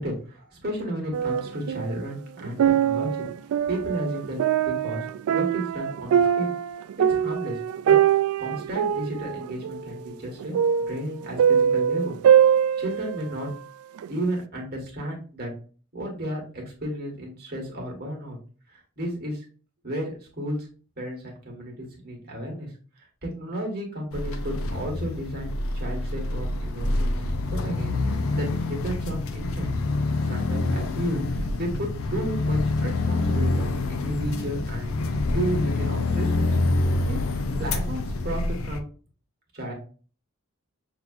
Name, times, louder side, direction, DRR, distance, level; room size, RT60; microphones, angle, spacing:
voice 1, 0.0-3.3 3.7-6.5 7.1-7.6 7.8-10.6 10.9-12.2 12.8-13.5 14.1-15.5 15.9-18.4 19.0-19.5 19.8-20.6 21.0-22.7 23.2-27.1 27.5-29.7 30.2-34.9 35.3-36.6 37.1-37.2 37.6-38.9 39.5-39.7, right 1 dB, 45° right, -1 dB, 1.7 m, -33 dB
sound 1, 1.1-2.0 2.4-13.5 14.0-14.1, right 9 dB, 85° right, 0.3 m, -23 dB
sound 2, 24.1-38.8, left 2 dB, 75° left, 0.5 m, -26 dB
6.1 x 2.9 x 2.5 m, 0.38 s
head